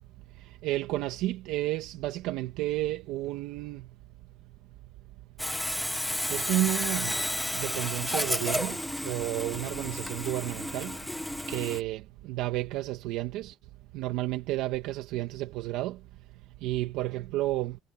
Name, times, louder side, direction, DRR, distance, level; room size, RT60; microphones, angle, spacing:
voice 1, 0.6-3.9 6.3-7.1 7.5-10.9 11.5-13.5 13.9-16.0 16.6-17.8, right 16 dB, 80° right, 1.7 m, -31 dB
Sawing, 5.4-11.8, left 1 dB, 5° left, 0.8 m, -32 dB
cardioid pair, 115°, 0 cm